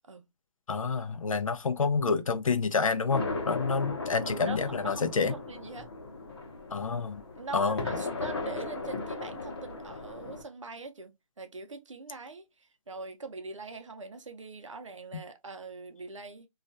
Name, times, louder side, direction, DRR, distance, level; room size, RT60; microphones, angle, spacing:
voice 1, 0.7-5.3 6.7-7.2 7.5-7.9, left 5 dB, 70° left, 0.5 m, -28 dB
sound 1, 3.1-10.4, left 3 dB, 45° left, 0.8 m, -37 dB
voice 2, 4.2-5.9 7.4-16.5, right 4 dB, 60° right, 0.6 m, -42 dB
2.3 x 2.2 x 2.5 m
hypercardioid pair, 175°, 18 cm